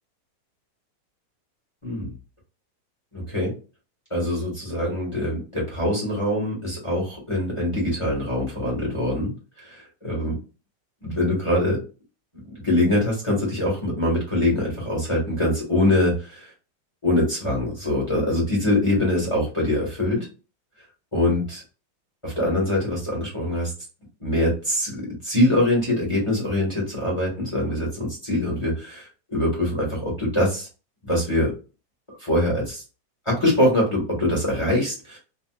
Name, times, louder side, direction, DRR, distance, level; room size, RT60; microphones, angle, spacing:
voice 1, 3.1-3.5 4.1-9.3 9.6-10.4 11.0-11.8 12.6-16.5 17.0-20.3 21.1-21.6 22.2-23.7 24.2-30.7 31.0-31.5 32.1-32.8 33.2-35.2, left 1 dB, 15° left, -3 dB, 1.4 m, -23 dB
3.6 x 2.7 x 2.3 m, 0.33 s
omnidirectional pair, 2.0 m